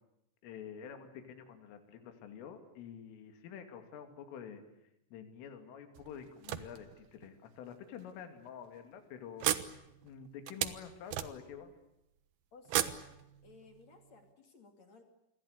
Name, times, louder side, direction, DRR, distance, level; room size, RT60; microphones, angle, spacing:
voice 1, 0.4-4.6 5.1-9.5 10.0-11.7, left 8 dB, 75° left, 7 dB, 5.1 m, -48 dB
sound 1, 6.0-7.3 8.0-8.1 8.5-8.7 9.4-11.7 12.7-13.8, right 12 dB, 70° right, 2.4 m, -37 dB
voice 2, 12.5-13.1 13.4-15.0, left 3 dB, 40° left, 6 dB, 3.3 m, -57 dB
27.5 x 22.5 x 8.2 m, 0.85 s
omnidirectional pair, 5.9 m